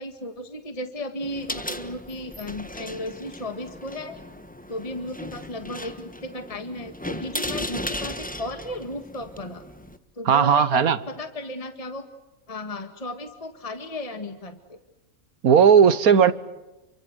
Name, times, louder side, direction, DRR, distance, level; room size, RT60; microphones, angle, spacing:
voice 1, 0.0-4.2 4.7-9.6 10.2-12.1 12.5-14.8, left 1 dB, 25° left, 1.8 m, -35 dB
sound 1, 1.2-10.0, left 1 dB, 5° left, 1.3 m, -36 dB
voice 2, 10.3-11.0 15.4-16.3, right 7 dB, 80° right, 1.6 m, -16 dB
29.5 x 24.0 x 8.0 m
omnidirectional pair, 1.5 m